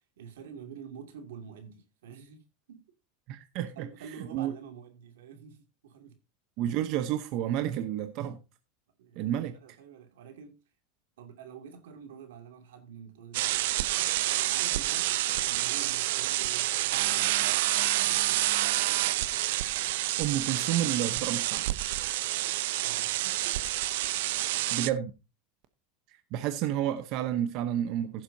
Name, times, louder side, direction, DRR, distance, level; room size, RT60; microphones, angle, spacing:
voice 1, 0.0-2.8 3.7-6.2 9.0-10.6 11.2-13.8 14.5-18.5 22.8-23.6 24.0-24.2, right 7 dB, 90° right, 2.5 m, -48 dB
voice 2, 3.3-3.9 4.3-4.5 6.6-8.4 9.2-9.5 20.2-21.6 24.7-25.1 26.3-28.2, right 11 dB, 50° right, 0.9 m, -30 dB
sound 1, 13.3-24.9, right 16 dB, 75° right, 0.6 m, -28 dB
15.5 x 7.6 x 2.7 m
supercardioid pair, 135°, 0 cm